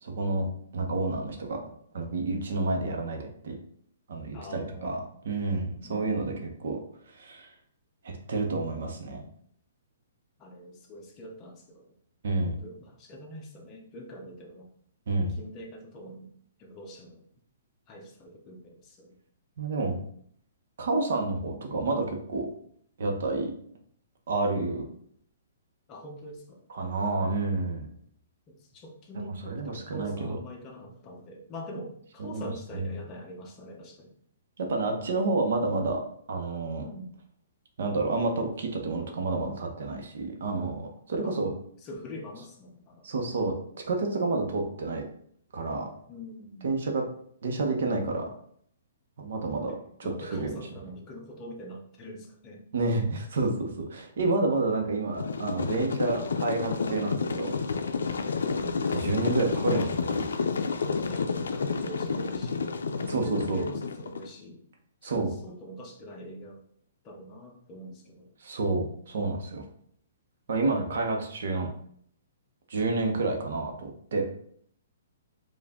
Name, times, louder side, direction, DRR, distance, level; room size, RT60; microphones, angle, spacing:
voice 1, 0.0-0.5 0.7-1.6 1.9-3.6 4.1-6.8 7.1-7.5 8.0-9.3 12.2-12.5 15.1-15.4 19.6-20.0 20.8-22.5 23.0-23.5 24.3-24.9 26.7-27.9 29.1-30.4 32.2-32.5 32.7-32.8 34.6-36.0 36.3-36.8 37.8-41.5 43.0-45.0 45.5-45.9 46.6-47.1 47.4-48.2 49.2-49.7 50.0-50.5 52.7-57.5 58.9-59.8 63.0-63.6 65.0-65.3 68.4-69.6 70.5-71.7 72.7-74.3, right 3 dB, 65° right, 3 dB, 1.0 m, -29 dB
voice 2, 4.3-5.1 5.8-6.1 10.4-11.9 12.4-14.7 15.2-16.3 16.6-17.2 17.9-19.2 21.7-21.8 25.9-26.7 28.5-34.1 36.8-37.1 41.2-41.4 41.8-43.1 46.1-46.7 49.5-49.8 50.0-52.7 58.5-58.8 59.5-59.9 60.8-62.7 63.2-64.7 65.0-66.6 67.0-68.3, equal, 25° left, 1 dB, 0.7 m, -44 dB
sound 1, 55.2-64.3, left 5 dB, 90° left, 0.4 m, -30 dB
4.8 x 2.5 x 3.6 m, 0.63 s
hypercardioid pair, 160°, 0 cm